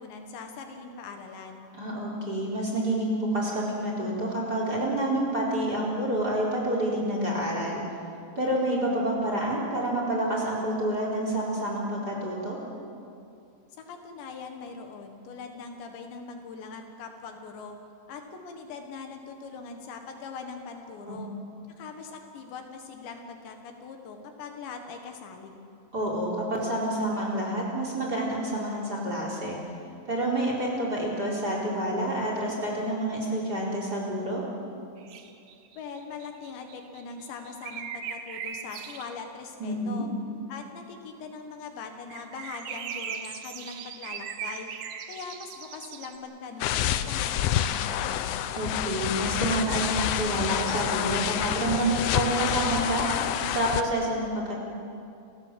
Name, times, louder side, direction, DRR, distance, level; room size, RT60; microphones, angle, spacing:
voice 1, 0.0-1.7 13.8-17.8 18.1-21.3 21.8-25.6 35.8-40.1 40.5-44.7 45.1-48.3, left 5 dB, 75° left, 5 dB, 3.8 m, -41 dB
voice 2, 1.7-7.8 8.4-12.6 21.1-21.2 25.9-29.6 30.1-34.4 39.6-40.1 48.5-53.0 53.5-54.5, right 1 dB, 20° right, -2 dB, 4.2 m, -28 dB
sound 1, 35.0-39.2 42.1-46.2, right 7 dB, 65° right, 2.2 m, -39 dB
sound 2, 46.6-53.8, left 11 dB, 90° left, 2.0 m, -28 dB
29.5 x 17.5 x 7.6 m, 2.5 s
omnidirectional pair, 5.3 m